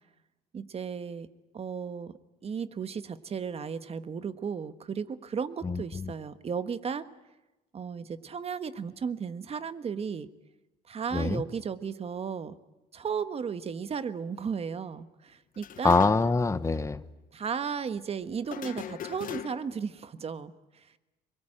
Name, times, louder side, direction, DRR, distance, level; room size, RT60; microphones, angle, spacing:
voice 1, 0.5-1.3 1.5-2.1 2.4-7.1 7.7-10.3 10.9-12.6 12.9-16.0 17.3-20.9, right 6 dB, 35° right, 12 dB, 1.3 m, -35 dB
voice 2, 5.6-6.0 11.1-11.4 15.8-17.0, left 3 dB, 15° left, 12 dB, 1.1 m, -24 dB
sound 1, 15.5-16.5 16.7-16.8 18.5-19.8, left 10 dB, 55° left, 1.2 m, -40 dB
24.0 x 22.5 x 8.9 m, 1.0 s
cardioid pair, 110°, 17 cm